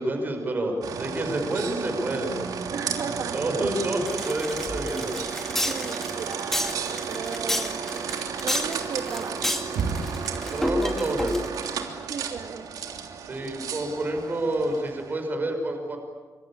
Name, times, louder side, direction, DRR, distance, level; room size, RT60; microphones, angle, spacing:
voice 1, 0.0-2.3 3.3-5.1 10.5-11.4 13.2-16.0, right 1 dB, 30° right, 3 dB, 5.9 m, -28 dB
sound 1, 0.8-15.2, right 6 dB, 85° right, 3.2 m, -33 dB
voice 2, 2.7-3.4 5.6-7.8 8.4-9.5 12.1-12.7, right 6 dB, 55° right, 5 dB, 2.2 m, -35 dB
sound 2, 4.1-11.7, left 1 dB, 5° left, 2.5 m, -30 dB
26.5 x 26.0 x 8.8 m, 1.4 s
wide cardioid pair, 170°, 6 cm